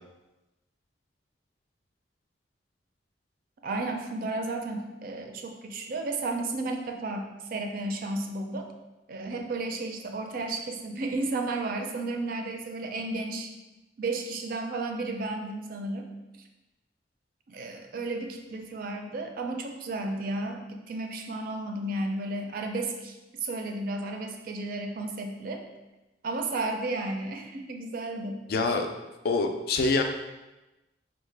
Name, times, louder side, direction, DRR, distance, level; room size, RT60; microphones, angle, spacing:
voice 1, 3.6-7.2 7.5-8.7 9.1-13.5 14.0-16.1 17.5-25.6 26.2-28.4, right 2 dB, 55° right, 4 dB, 0.4 m, -33 dB
voice 2, 28.5-28.9 29.2-30.0, left 3 dB, 60° left, 5 dB, 0.3 m, -25 dB
3.8 x 2.1 x 3.2 m, 1.0 s
head